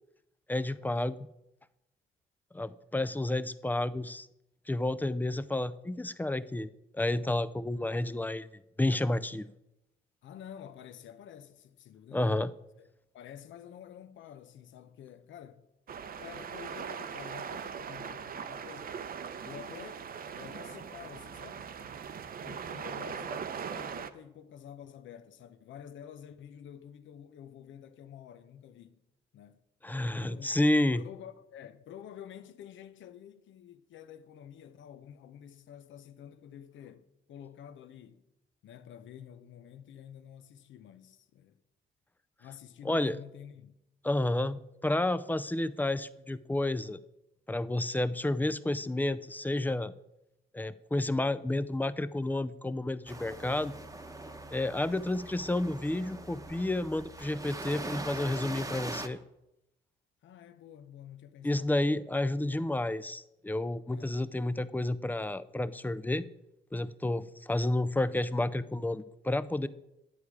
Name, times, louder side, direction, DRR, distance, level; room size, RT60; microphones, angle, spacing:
voice 1, 0.5-1.3 2.5-4.3 4.7-6.7 6.9-8.5 8.8-9.5 12.1-12.5 29.8-31.0 42.8-43.2 44.0-47.0 47.5-49.9 50.5-53.7 54.5-59.2 61.4-66.2 66.7-69.7, left 1 dB, 10° left, 0.4 m, -30 dB
voice 2, 10.2-12.5 12.8-12.9 13.1-15.7 16.1-18.9 19.4-20.0 20.3-22.0 22.4-29.0 29.3-29.6 30.0-30.6 30.9-38.2 38.6-41.6 42.4-43.8 60.2-61.8 63.9-64.2, left 9 dB, 70° left, 0.8 m, -49 dB
sound 1, 15.9-24.1, right 7 dB, 50° right, 0.7 m, -40 dB
sound 2, 53.1-59.1, right 2 dB, 15° right, 1.0 m, -42 dB
11.0 x 8.4 x 4.8 m
cardioid pair, 90°, 20 cm